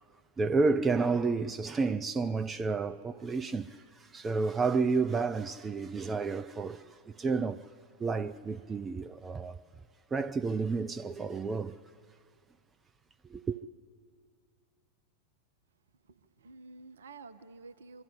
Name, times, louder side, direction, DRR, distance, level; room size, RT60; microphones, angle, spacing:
voice 1, 0.4-7.7 8.0-9.6 10.1-11.8 13.3-13.6, right 4 dB, 15° right, 0.4 m, -31 dB
voice 2, 16.1-18.0, right 3 dB, 65° right, 0.7 m, -50 dB
25.5 x 12.5 x 9.9 m
figure-of-eight pair, 90°, 0 cm